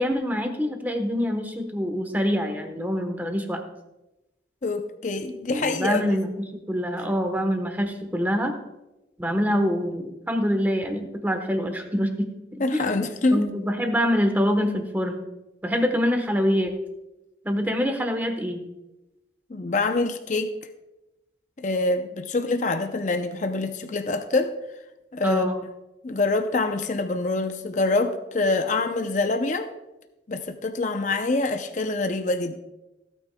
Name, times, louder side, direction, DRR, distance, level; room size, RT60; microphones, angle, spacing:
voice 1, 0.0-3.6 5.5-8.5 9.2-12.3 12.7-12.8 13.3-15.2 15.6-16.7 17.4-18.6 25.2-25.6, equal, 10° right, 5 dB, 1.1 m, -25 dB
voice 2, 4.6-6.2 12.6-13.5 19.5-20.5 21.6-24.6 25.1-25.5 26.0-29.7 30.3-32.6, left 3 dB, 45° left, 7 dB, 0.6 m, -25 dB
17.0 x 9.1 x 2.2 m, 0.98 s
head